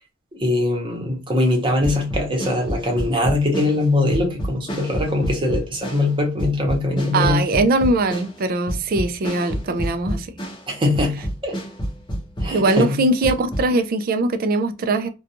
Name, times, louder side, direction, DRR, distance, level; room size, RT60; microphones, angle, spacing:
voice 1, 0.3-7.4 10.7-11.6 12.4-12.9, left 2 dB, 25° right, 0.8 m, -21 dB
sound 1, 1.8-10.7 10.9-13.7, equal, 20° left, 0.7 m, -29 dB
voice 2, 7.1-10.3 12.5-15.1, right 2 dB, 45° right, 0.3 m, -21 dB
2.4 x 2.2 x 2.7 m
head